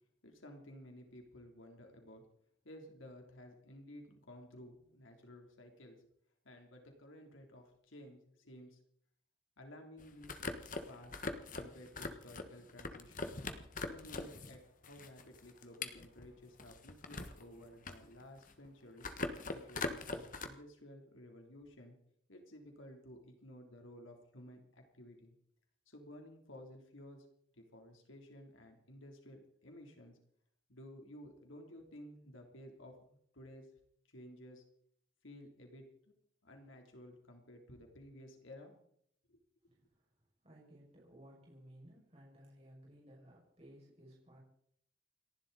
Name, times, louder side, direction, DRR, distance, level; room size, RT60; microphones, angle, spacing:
voice 1, 0.2-2.2 2.6-6.1 6.4-8.8 9.6-10.3 10.9-11.2 11.5-13.3 13.7-19.1 19.5-22.0 22.3-25.3 25.9-27.3 27.6-30.2 30.7-32.9 33.3-33.7 34.1-34.6 35.2-35.8 36.4-38.7 39.3-39.4, left 1 dB, 85° left, 3 dB, 3.5 m, -54 dB
sound 1, 10.0-14.6 14.8-17.4 17.7-18.7 19.0-20.5, left 3 dB, 40° left, 1.5 m, -42 dB
voice 2, 40.4-44.4, equal, 30° right, -4 dB, 6.3 m, -58 dB
29.5 x 11.5 x 4.2 m, 0.69 s
head